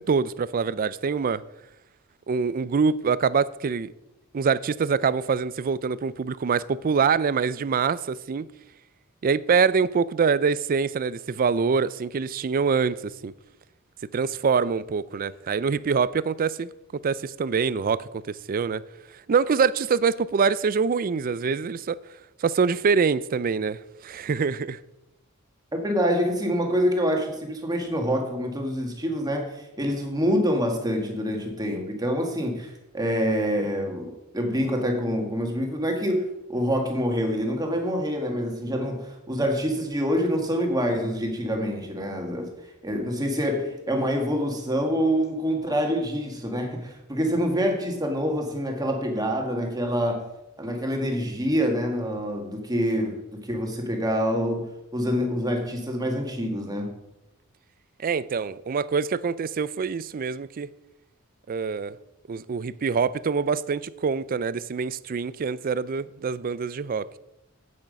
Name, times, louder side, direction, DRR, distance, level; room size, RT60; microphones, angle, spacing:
voice 1, 0.0-1.4 2.3-3.9 4.3-8.5 9.2-13.3 14.1-18.8 19.3-22.0 22.4-24.8 58.0-60.7 61.5-62.0 62.3-67.1, right 5 dB, 40° right, 0.4 m, -25 dB
voice 2, 25.8-42.5 42.8-50.2 50.6-56.9, equal, 20° right, 1.8 m, -26 dB
8.8 x 8.6 x 5.2 m
head